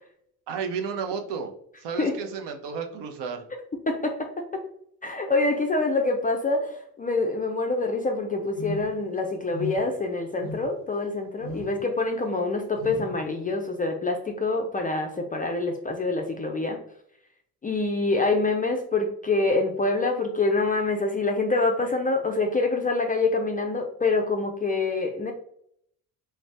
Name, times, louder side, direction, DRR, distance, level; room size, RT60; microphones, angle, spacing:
voice 1, 0.5-1.5 1.8-3.5, right 6 dB, 60° right, 5 dB, 0.6 m, -32 dB
voice 2, 3.9-4.6 5.0-16.8 17.6-25.3, left 3 dB, 20° left, 3 dB, 0.4 m, -26 dB
sound 1, 8.5-9.0 9.5-10.0 10.4-10.9 11.4-11.8 12.7-13.2, equal, 25° right, 1.0 m, -36 dB
2.5 x 2.2 x 3.2 m, 0.68 s
hypercardioid pair, 45°, 48 cm